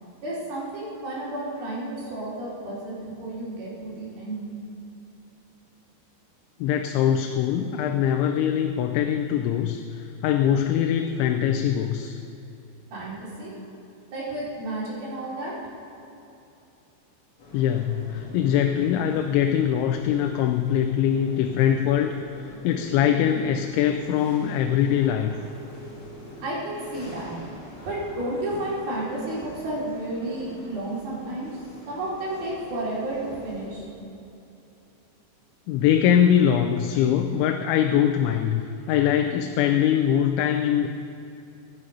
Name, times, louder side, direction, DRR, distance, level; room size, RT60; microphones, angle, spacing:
voice 1, 0.2-4.5 12.9-13.5 14.1-15.5 26.4-27.3 27.9-31.6 31.9-33.8, right 1 dB, 55° right, -7 dB, 5.6 m, -32 dB
voice 2, 6.6-12.2 17.5-25.3 35.7-40.9, left 9 dB, 85° left, 5 dB, 3.1 m, -22 dB
sound 1, 17.4-33.7, equal, 40° left, 3.6 m, -44 dB
25.5 x 9.7 x 5.5 m, 2.8 s
omnidirectional pair, 5.3 m